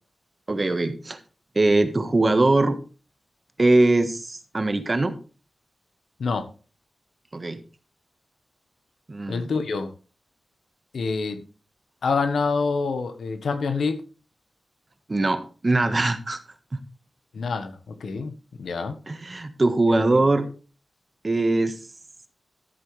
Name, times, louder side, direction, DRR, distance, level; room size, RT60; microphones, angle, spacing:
voice 1, 0.5-1.2 1.5-2.8 3.6-5.2 7.3-7.6 9.1-9.5 15.1-16.4 19.1-20.5 21.2-21.8, right 2 dB, 35° right, 9 dB, 1.5 m, -21 dB
voice 2, 9.3-9.9 10.9-11.4 12.0-14.0 17.3-19.0, left 4 dB, 85° left, 9 dB, 1.3 m, -26 dB
13.0 x 7.9 x 3.4 m, 0.36 s
cardioid pair, 65°, 0 cm